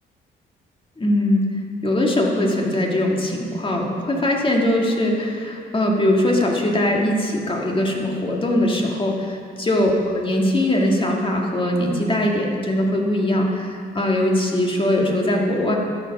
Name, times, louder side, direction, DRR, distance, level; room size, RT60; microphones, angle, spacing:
voice 1, 1.0-1.5 1.8-15.8, left 1 dB, 25° left, 0 dB, 1.9 m, -21 dB
12.0 x 7.0 x 5.4 m, 2.2 s
cardioid pair, 90°, 20 cm